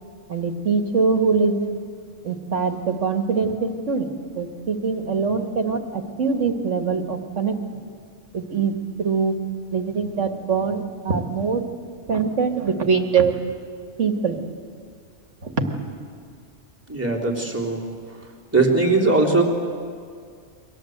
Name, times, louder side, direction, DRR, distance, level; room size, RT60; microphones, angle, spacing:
voice 1, 0.3-1.7 2.2-4.1 4.4-5.8 6.2-7.5 8.3-8.7 9.0-9.3 9.7-11.6 12.1-13.3 14.0-14.4 15.4-15.5, right 5 dB, 75° right, 5 dB, 2.2 m, -23 dB
voice 2, 16.9-17.8 18.5-19.5, right 3 dB, 10° right, -3 dB, 3.6 m, -19 dB
29.0 x 23.5 x 8.0 m, 2.1 s
omnidirectional pair, 1.3 m